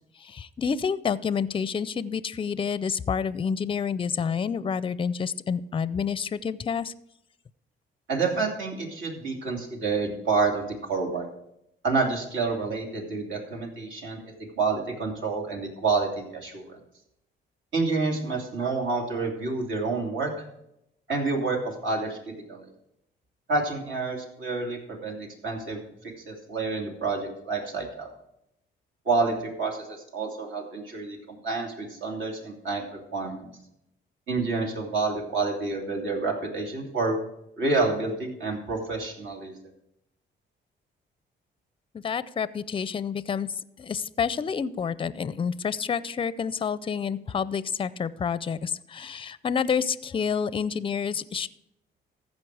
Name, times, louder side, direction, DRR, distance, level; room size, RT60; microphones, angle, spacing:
voice 1, 0.2-6.9 41.9-51.5, left 6 dB, 25° left, 17 dB, 0.5 m, -29 dB
voice 2, 8.1-10.6 10.9-11.3 11.8-14.2 14.6-16.8 17.7-20.3 21.1-21.6 21.8-22.2 22.5-22.7 23.5-25.8 26.3-28.1 29.1-33.5 34.3-37.2 37.6-39.5, right 3 dB, 70° right, 1 dB, 2.8 m, -28 dB
15.0 x 5.3 x 4.7 m, 0.80 s
cardioid pair, 90°, 20 cm